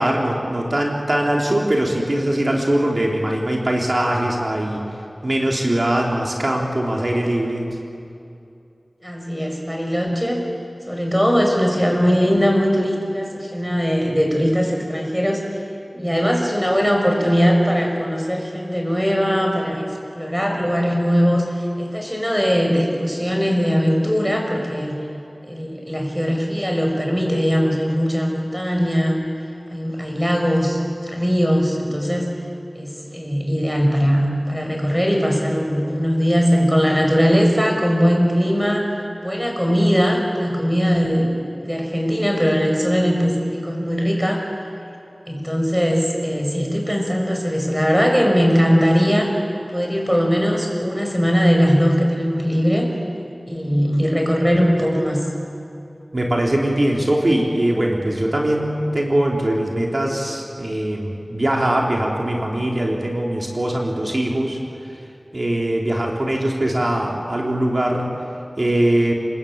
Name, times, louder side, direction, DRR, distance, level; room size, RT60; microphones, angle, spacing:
voice 1, 0.0-4.9 5.2-7.7 56.1-64.6 65.3-68.1 68.6-69.1, right 1 dB, 50° right, -1 dB, 3.9 m, -21 dB
voice 2, 9.0-10.4 10.9-15.4 15.9-19.8 20.1-21.4 21.8-25.0 25.5-29.2 29.7-32.3 32.7-38.9 39.2-44.4 45.3-49.3 49.7-52.9 53.5-55.2, equal, 5° right, 1 dB, 6.3 m, -20 dB
28.5 x 20.5 x 8.9 m, 2.7 s
wide cardioid pair, 55°, 0 cm